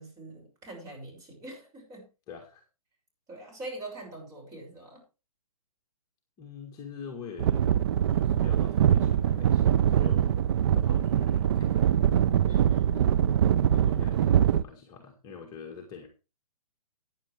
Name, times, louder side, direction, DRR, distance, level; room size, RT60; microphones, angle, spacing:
voice 1, 0.0-2.1 3.3-5.0 12.5-13.4, right 2 dB, 20° right, 0 dB, 6.2 m, -43 dB
voice 2, 2.3-2.6 6.4-7.7 8.1-10.3 10.7-11.8 12.9-16.1, left 6 dB, 20° left, 1 dB, 1.8 m, -45 dB
sound 1, 7.4-14.6, right 9 dB, 45° right, 0.5 m, -23 dB
14.5 x 9.6 x 3.4 m, 0.31 s
hypercardioid pair, 145°, 19 cm